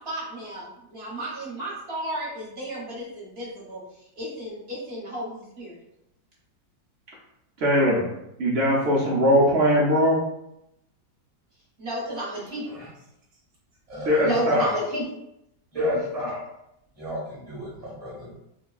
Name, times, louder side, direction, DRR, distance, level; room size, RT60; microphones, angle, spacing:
voice 1, 0.0-5.8 11.8-12.7, right 1 dB, 40° right, -7 dB, 1.2 m, -35 dB
voice 2, 7.6-8.1 8.4-10.2 14.1-14.7, equal, 75° right, -4 dB, 0.6 m, -20 dB
voice 3, 13.9-15.1 15.7-16.4 17.0-18.3, equal, 25° right, -5 dB, 1.2 m, -28 dB
3.9 x 2.2 x 2.3 m, 0.81 s
omnidirectional pair, 1.9 m